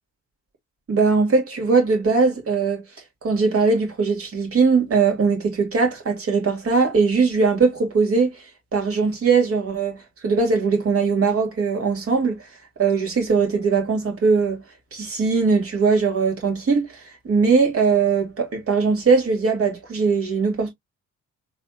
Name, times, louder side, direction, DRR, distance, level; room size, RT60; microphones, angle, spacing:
voice 1, 0.9-2.8 3.2-8.4 8.7-12.4 12.8-14.6 14.9-20.7, right 4 dB, 50° right, 2.6 m, -20 dB
4.1 x 3.6 x 2.4 m
cardioid pair, 90°, 30 cm